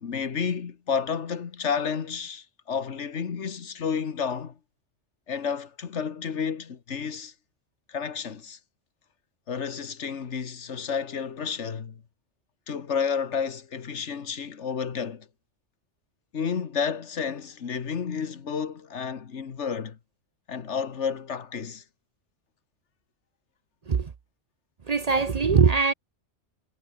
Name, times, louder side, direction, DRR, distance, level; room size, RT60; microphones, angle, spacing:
voice 1, 0.0-4.6 5.3-7.3 7.9-8.6 9.5-12.0 12.7-15.3 16.3-20.0 20.5-21.8, left 6 dB, 80° left, 1.6 m, -31 dB
voice 2, 24.9-25.9, right 5 dB, 40° right, 0.7 m, -21 dB
omnidirectional pair, 1.2 m